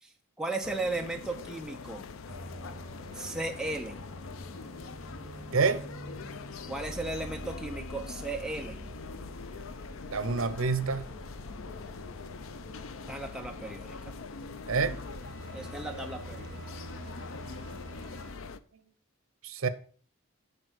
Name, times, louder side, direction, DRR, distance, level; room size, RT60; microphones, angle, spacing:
voice 1, 0.4-2.1 3.1-4.0 6.7-8.8 13.1-14.0 15.5-16.6, right 2 dB, 5° right, 0.6 m, -35 dB
sound 1, 0.6-18.6, left 4 dB, 70° left, 0.5 m, -43 dB
sound 2, 2.3-18.3, right 1 dB, 25° right, 3.8 m, -46 dB
voice 2, 5.5-5.8 10.1-11.0 14.7-15.0 19.4-19.7, right 4 dB, 80° right, 0.8 m, -27 dB
11.0 x 4.3 x 5.0 m
head